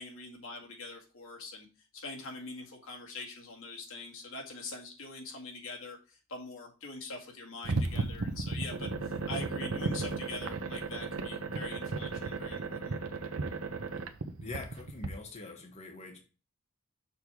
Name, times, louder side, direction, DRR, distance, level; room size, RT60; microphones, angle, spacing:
voice 1, 0.0-1.7 1.9-13.0, left 3 dB, 70° left, 0 dB, 2.1 m, -44 dB
sound 1, 7.6-15.1, right 3 dB, 70° right, 0.8 m, -35 dB
voice 2, 14.4-16.2, left 3 dB, 30° left, 1 dB, 1.4 m, -43 dB
6.7 x 3.6 x 6.2 m, 0.34 s
head